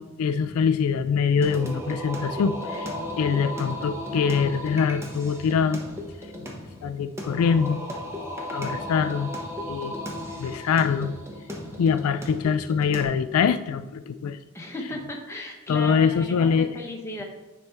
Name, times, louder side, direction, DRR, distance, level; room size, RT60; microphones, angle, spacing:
voice 1, 0.0-5.8 6.8-7.8 8.5-9.3 9.7-10.0 10.4-11.1 11.8-14.4 15.7-16.7, left 6 dB, 80° left, 12 dB, 0.3 m, -24 dB
Singing, 1.4-13.0, left 1 dB, 10° right, 0.8 m, -35 dB
voice 2, 14.5-17.2, left 1 dB, 10° left, 0 dB, 1.0 m, -36 dB
9.8 x 4.3 x 3.5 m, 1.1 s
head